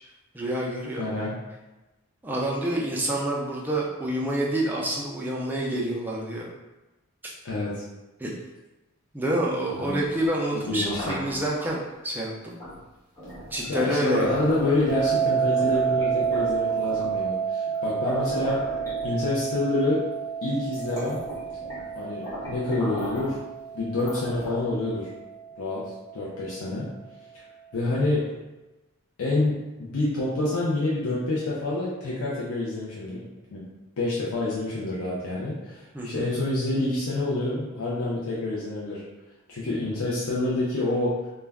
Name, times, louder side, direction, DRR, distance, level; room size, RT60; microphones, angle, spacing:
voice 1, 0.3-1.1 2.2-6.5 7.2-7.3 8.2-8.3 9.1-12.6 13.5-14.5 35.9-36.2, right 1 dB, 10° right, -3 dB, 0.3 m, -28 dB
voice 2, 1.0-1.3 7.4-7.8 9.7-10.0 10.6-11.2 13.7-18.6 19.0-20.0 20.4-21.2 21.9-23.4 23.7-25.1 25.6-25.8 26.1-26.9 27.7-28.3 29.2-33.2 33.5-33.6 34.0-39.0 39.5-41.2, left 2 dB, 80° left, -7 dB, 0.5 m, -27 dB
sound 1, 9.6-11.7 12.6-12.8 13.2-15.2 15.6-17.2 17.7-17.8 18.0-19.5 20.2-20.3 20.6-21.9 22.2-23.4 24.0-24.8, equal, 15° left, 0.9 m, -37 dB
sound 2, 14.9-25.8, right 7 dB, 80° right, 0.5 m, -29 dB
2.2 x 2.1 x 3.4 m, 1.1 s
head